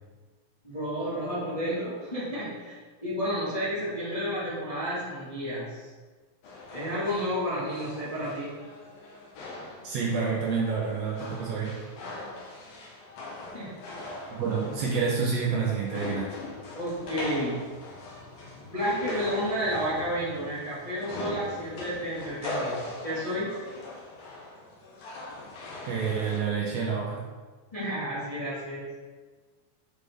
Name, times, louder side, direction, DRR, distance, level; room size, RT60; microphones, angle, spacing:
voice 1, 0.6-5.9 6.7-8.5 13.5-13.7 16.7-17.6 18.7-23.5 27.7-28.9, equal, 30° left, -11 dB, 0.6 m, -31 dB
sound 1, 6.4-26.4, left 2 dB, 65° left, 2.0 m, -40 dB
voice 2, 9.8-11.8 14.3-16.4 25.8-27.2, right 5 dB, 70° right, -4 dB, 1.7 m, -28 dB
6.7 x 4.3 x 3.5 m, 1.4 s
omnidirectional pair, 3.7 m